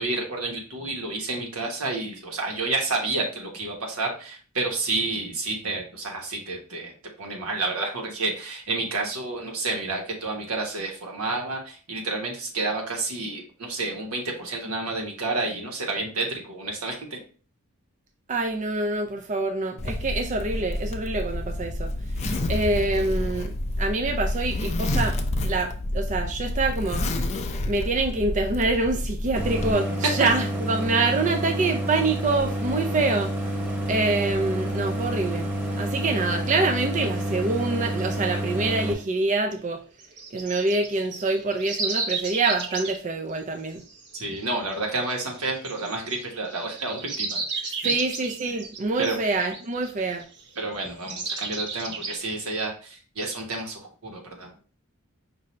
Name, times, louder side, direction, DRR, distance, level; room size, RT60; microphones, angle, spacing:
voice 1, 0.0-6.9 7.2-17.2 44.1-47.9 49.0-49.2 50.5-54.5, right 3 dB, 90° right, 1 dB, 1.3 m, -30 dB
voice 2, 18.3-21.9 22.5-27.0 27.7-33.3 33.9-35.5 35.8-39.8 40.3-43.8 47.8-50.2, right 3 dB, 35° right, 4 dB, 0.4 m, -26 dB
Zipper (clothing), 19.8-29.7, left 1 dB, 30° left, 0.5 m, -29 dB
Idling, 29.3-38.9, right 1 dB, 10° right, 1.0 m, -29 dB
sound 1, 38.9-39.0 40.0-43.0 43.9-50.6 51.1-52.2, right 4 dB, 55° right, 0.9 m, -33 dB
5.5 x 2.7 x 3.1 m, 0.39 s
head